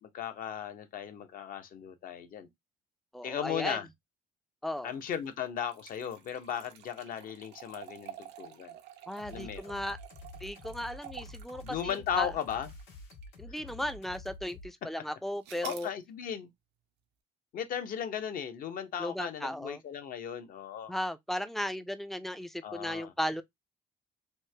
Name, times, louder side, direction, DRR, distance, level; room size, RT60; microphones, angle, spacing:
voice 1, 0.0-2.5 3.2-3.9 4.8-8.7 9.3-9.7 11.6-12.7 15.6-16.5 17.5-20.9 22.6-23.1, left 9 dB, 55° left, 0.7 m, -36 dB
voice 2, 3.1-3.8 4.6-4.9 9.1-10.0 10.4-12.3 13.4-15.9 19.0-19.8 20.9-23.4, equal, ahead, 0.3 m, -36 dB
sound 1, 4.9-13.4 13.9-14.0 15.4-15.9, right 11 dB, 85° right, 0.6 m, -50 dB
sound 2, 9.2-14.7, left 1 dB, 80° left, 1.3 m, -48 dB
3.1 x 2.1 x 3.2 m
cardioid pair, 110°, 17 cm